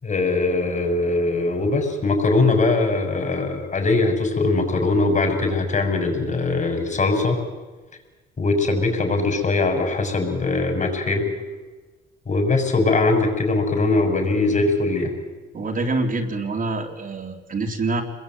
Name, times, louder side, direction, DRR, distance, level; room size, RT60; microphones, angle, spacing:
voice 1, 0.0-7.4 8.4-11.3 12.3-15.1, left 3 dB, 40° left, 4 dB, 7.2 m, -21 dB
voice 2, 15.5-18.0, right 3 dB, 45° right, 2 dB, 3.9 m, -26 dB
27.0 x 22.0 x 9.4 m, 1.3 s
cardioid pair, 90°, 20 cm